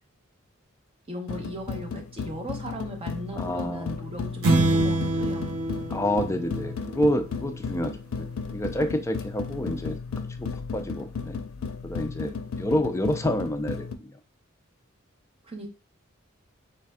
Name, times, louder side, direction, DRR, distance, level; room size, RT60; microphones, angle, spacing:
voice 1, 1.1-5.5 15.4-15.7, equal, 30° right, 3 dB, 0.8 m, -37 dB
sound 1, 1.3-13.9, left 5 dB, 85° left, 0.5 m, -35 dB
voice 2, 3.4-4.0 5.9-8.3 8.5-10.0 10.4-11.4 11.8-14.2, left 1 dB, 15° left, 7 dB, 0.3 m, -28 dB
sound 2, 4.4-7.1, right 2 dB, 70° right, 0.6 m, -25 dB
3.4 x 3.3 x 3.5 m, 0.33 s
head